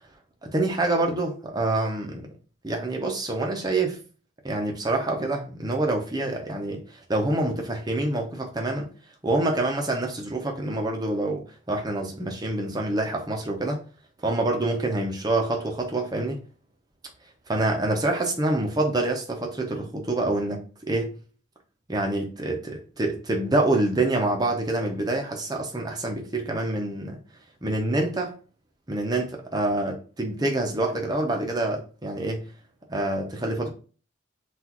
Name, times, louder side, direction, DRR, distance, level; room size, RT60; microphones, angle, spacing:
voice 1, 0.4-2.3 2.6-4.0 4.4-8.9 9.2-13.8 14.2-16.4 17.5-21.2 21.9-27.2 27.6-28.3 28.9-32.5 32.9-33.7, right 2 dB, 20° right, 0.7 m, -26 dB
5.9 x 2.5 x 3.0 m
head